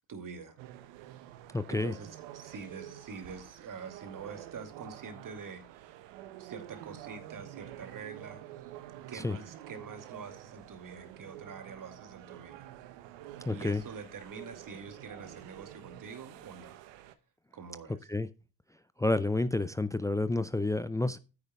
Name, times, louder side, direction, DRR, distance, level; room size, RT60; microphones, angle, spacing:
voice 1, 0.1-0.6 1.7-6.0 6.4-8.7 9.1-12.7 13.5-16.8 17.5-18.1, right 5 dB, 45° right, 2.6 m, -46 dB
sound 1, 0.6-17.1, right 13 dB, 65° right, 1.0 m, -48 dB
voice 2, 1.5-1.9 9.1-9.4 13.4-13.8 18.1-18.3 19.0-21.2, left 2 dB, 5° left, 0.5 m, -29 dB
13.0 x 9.6 x 2.3 m
figure-of-eight pair, 50°, 46 cm